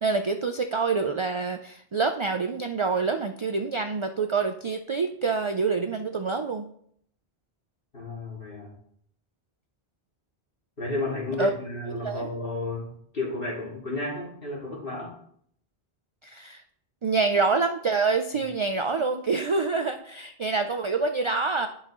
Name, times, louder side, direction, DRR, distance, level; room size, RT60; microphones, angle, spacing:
voice 1, 0.0-6.7 11.4-11.5 12.0-12.3 16.2-16.6 17.0-21.7, right 4 dB, 50° right, 7 dB, 0.4 m, -26 dB
voice 2, 7.9-8.7 10.8-15.1, left 2 dB, 60° left, -4 dB, 2.8 m, -32 dB
10.5 x 5.6 x 3.1 m, 0.66 s
omnidirectional pair, 1.1 m